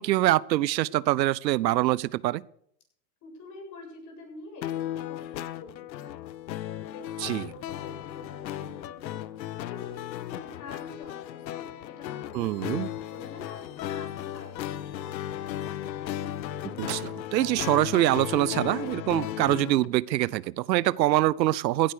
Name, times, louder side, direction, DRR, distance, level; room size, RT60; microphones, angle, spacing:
voice 1, 0.0-2.4 7.2-7.5 12.3-12.9 16.6-21.9, right 16 dB, 90° right, 23 dB, 0.7 m, -25 dB
voice 2, 3.2-4.7 4.9-6.1 6.9-9.2 9.7-12.7 13.1-15.5, left 3 dB, 35° left, 2 dB, 7.5 m, -47 dB
sound 1, 4.6-19.9, left 12 dB, 85° left, 1.1 m, -35 dB
sound 2, 6.2-15.5 16.0-18.4 18.8-20.3, right 14 dB, 60° right, 1.4 m, -51 dB
sound 3, 10.3-18.9, left 10 dB, 55° left, 2.4 m, -55 dB
16.0 x 10.5 x 6.6 m, 0.67 s
supercardioid pair, 135°, 50 cm